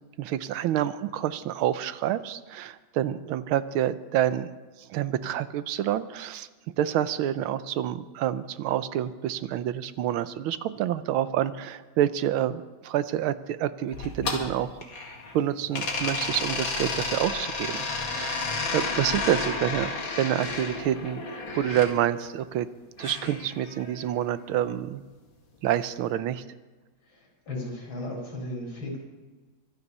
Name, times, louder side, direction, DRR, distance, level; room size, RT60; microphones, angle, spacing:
voice 1, 0.2-4.5 4.8-6.5 6.8-14.7 15.3-21.3 21.5-22.7 23.0-25.0 25.6-26.4, right 11 dB, 85° right, 14 dB, 1.6 m, -28 dB
sound 1, 13.9-15.3 15.7-21.9 23.0-24.1, left 3 dB, 70° left, 2.8 m, -32 dB
voice 2, 27.5-29.0, left 1 dB, 85° left, -1 dB, 5.6 m, -35 dB
24.0 x 9.8 x 5.4 m, 1.3 s
omnidirectional pair, 2.2 m